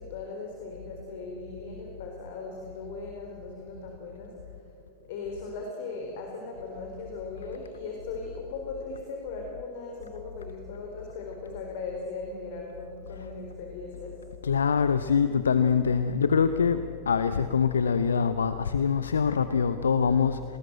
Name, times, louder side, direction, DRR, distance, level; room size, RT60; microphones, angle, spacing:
voice 1, 0.0-4.3 5.1-14.2, left 3 dB, 50° left, 2 dB, 4.0 m, -38 dB
voice 2, 14.4-20.4, left 6 dB, 70° left, 12 dB, 0.8 m, -24 dB
28.5 x 20.0 x 7.8 m, 2.8 s
figure-of-eight pair, 90°, 0 cm